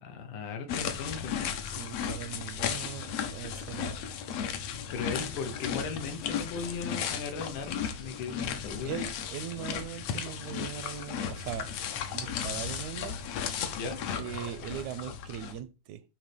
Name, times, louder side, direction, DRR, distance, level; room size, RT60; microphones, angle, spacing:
voice 1, 0.0-1.6 4.9-9.0 13.8-14.0, left 5 dB, 85° left, 2.6 m, -37 dB
sound 1, 0.7-15.6, left 8 dB, 70° left, 1.8 m, -35 dB
voice 2, 1.6-4.0 4.9-5.0 8.8-11.7 12.1-13.2 14.2-16.0, right 11 dB, 80° right, 1.9 m, -40 dB
9.0 x 3.1 x 4.9 m
omnidirectional pair, 3.5 m